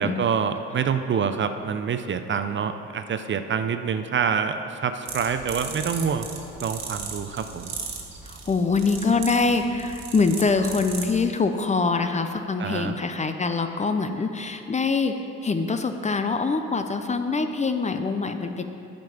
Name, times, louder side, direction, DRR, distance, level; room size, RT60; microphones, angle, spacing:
voice 1, 0.0-6.3 6.6-7.7 12.6-13.0, right 6 dB, 40° right, 9 dB, 0.5 m, -26 dB
sound 1, 5.1-11.2, right 5 dB, 60° right, 1.3 m, -37 dB
voice 2, 8.2-15.1 15.4-18.6, left 4 dB, 25° left, 7 dB, 0.5 m, -24 dB
9.3 x 5.2 x 5.7 m, 2.8 s
cardioid pair, 90°, 30 cm